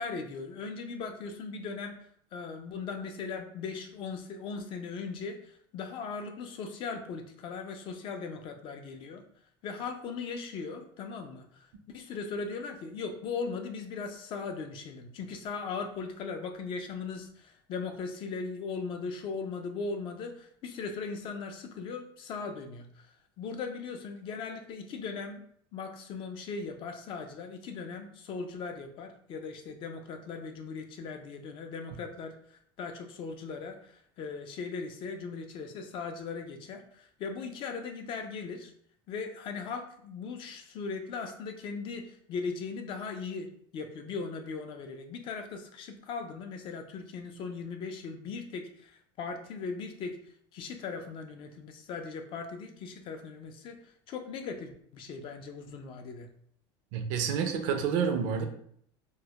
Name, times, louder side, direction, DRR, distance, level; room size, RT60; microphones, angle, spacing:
voice 1, 0.0-2.0 2.3-9.2 9.6-25.4 25.7-38.7 39.1-50.2 50.5-56.3, left 4 dB, 40° left, 5 dB, 0.3 m, -39 dB
voice 2, 56.9-58.4, right 6 dB, 65° right, 6 dB, 0.5 m, -29 dB
2.2 x 2.0 x 2.8 m, 0.64 s
supercardioid pair, 130°, 13 cm